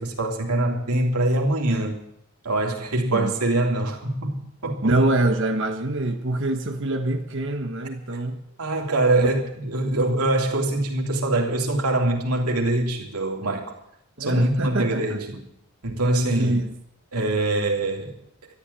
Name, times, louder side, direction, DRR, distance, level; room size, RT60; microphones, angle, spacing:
voice 1, 0.0-2.0 2.4-5.0 8.6-13.7 14.2-15.5 15.8-16.6 17.1-18.1, right 2 dB, 85° right, 3.1 m, -23 dB
voice 2, 4.8-8.4 9.2-9.3 14.2-15.2 16.4-16.7, right 2 dB, 55° right, 1.2 m, -25 dB
13.0 x 9.8 x 9.9 m
head